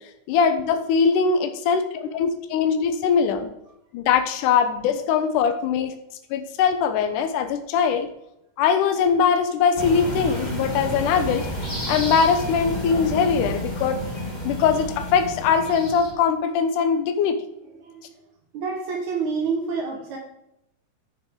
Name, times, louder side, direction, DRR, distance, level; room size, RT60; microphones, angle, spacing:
voice 1, 0.3-3.5 3.9-6.0 6.3-8.1 8.6-11.5 11.9-14.0 14.4-17.4, left 6 dB, 75° left, 8 dB, 2.3 m, -21 dB
sound 1, 9.7-16.1, right 1 dB, 15° left, 2.1 m, -30 dB
voice 2, 17.6-18.2 18.5-20.2, right 5 dB, 65° right, 0 dB, 2.7 m, -28 dB
10.0 x 9.3 x 3.7 m, 0.83 s
omnidirectional pair, 3.9 m